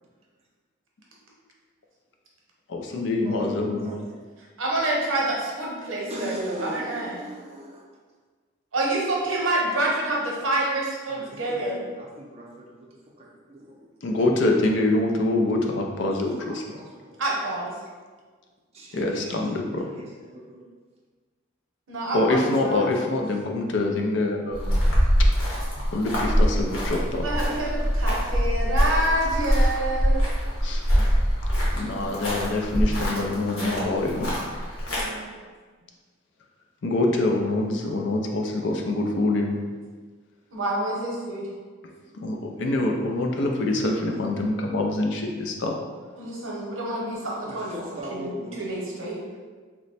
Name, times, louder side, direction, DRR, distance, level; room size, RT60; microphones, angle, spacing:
voice 1, 2.7-3.9 14.0-16.6 18.9-19.8 22.1-24.8 25.2-25.3 25.9-27.2 30.6-30.8 31.5-34.3 36.8-39.6 42.2-45.7, left 2 dB, 60° left, 1 dB, 0.4 m, -25 dB
voice 2, 3.2-4.0 6.1-7.9 11.1-13.8 15.9-17.5 18.7-20.7 47.2-48.9 49.3-49.4, equal, 30° right, -3 dB, 0.5 m, -40 dB
voice 3, 4.6-7.2 8.7-11.8 17.2-17.7 21.9-22.9 27.2-30.2 34.9-35.3 40.5-41.5 46.2-47.7 48.1-49.2, right 1 dB, 80° right, -3 dB, 0.8 m, -27 dB
sound 1, 24.5-35.0, equal, 85° left, 1.0 m, -23 dB
3.0 x 2.1 x 4.0 m, 1.5 s
head